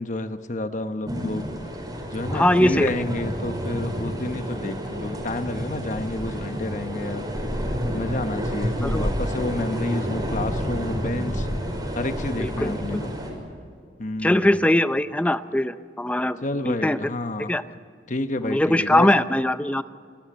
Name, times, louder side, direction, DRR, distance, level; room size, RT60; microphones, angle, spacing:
voice 1, 0.0-1.5 2.1-7.3 7.9-11.5 11.9-13.1 14.0-14.6 16.4-17.6 18.1-19.1, left 2 dB, 45° left, 9 dB, 1.0 m, -30 dB
sound 1, 1.1-13.3, equal, 20° right, 5.6 m, -29 dB
voice 2, 2.3-2.9 8.8-9.1 12.4-13.0 14.2-17.0 17.5-17.6 18.4-19.8, left 1 dB, 10° left, 13 dB, 0.5 m, -21 dB
29.5 x 14.5 x 8.8 m, 2.1 s
head